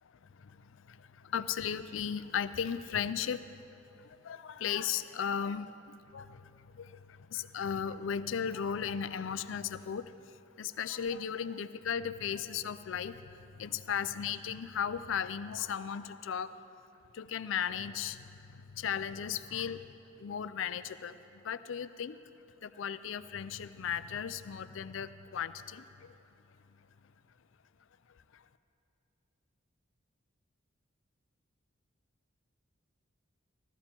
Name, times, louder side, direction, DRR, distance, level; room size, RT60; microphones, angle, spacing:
voice 1, 0.9-3.6 4.0-10.1 10.6-13.2 13.6-16.5 17.1-19.8 20.2-21.2 21.4-22.2 22.6-26.1, left 8 dB, 70° left, 14 dB, 0.4 m, -36 dB
16.0 x 12.5 x 4.4 m, 2.8 s
head